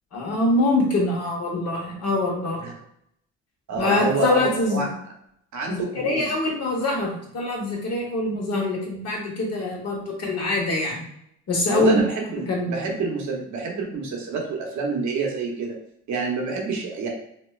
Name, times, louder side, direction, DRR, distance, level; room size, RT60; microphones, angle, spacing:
voice 1, 0.1-2.6 3.8-4.9 5.7-11.0 11.5-12.0 12.5-12.9, left 2 dB, 55° left, -1 dB, 1.1 m, -24 dB
voice 2, 3.7-4.9 5.5-6.4 11.7-15.8 16.1-17.1, right 4 dB, 70° right, 0 dB, 0.9 m, -27 dB
4.2 x 2.1 x 2.3 m, 0.72 s
cardioid pair, 90°, 30 cm